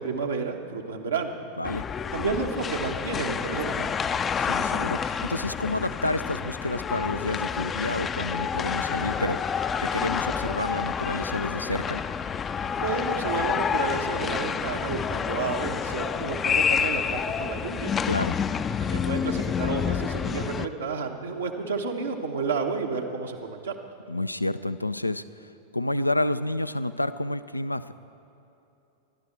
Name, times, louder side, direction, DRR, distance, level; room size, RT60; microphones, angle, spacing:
voice 1, 0.0-1.3 2.1-4.0 12.8-17.9 18.9-23.8, right 4 dB, 75° right, 1 dB, 1.2 m, -31 dB
sound 1, 1.6-20.7, left 7 dB, 20° left, 0.5 m, -28 dB
voice 2, 4.4-12.0 18.0-18.4 24.1-27.9, left 2 dB, 85° left, 13 dB, 0.4 m, -30 dB
26.5 x 12.0 x 4.5 m, 2.8 s
figure-of-eight pair, 90°, 0 cm